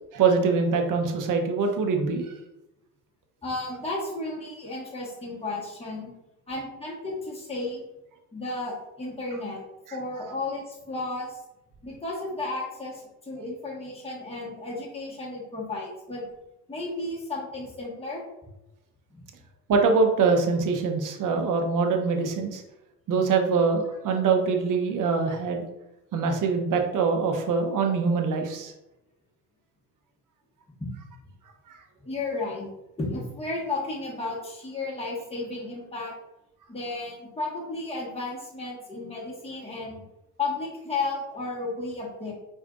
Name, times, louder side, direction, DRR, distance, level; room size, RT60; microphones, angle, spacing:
voice 1, 0.1-2.3 19.7-22.6 23.1-25.7 26.1-28.7, right 4 dB, 45° right, 4 dB, 0.8 m, -24 dB
voice 2, 3.4-6.1 6.5-7.8 8.3-9.6 9.9-11.4 11.8-16.2 16.7-18.2 19.1-19.2 32.0-32.7 33.0-36.1 36.7-40.0 40.4-42.3, left 2 dB, 15° left, -4 dB, 1.3 m, -33 dB
4.8 x 2.5 x 2.4 m, 0.93 s
hypercardioid pair, 70°, 44 cm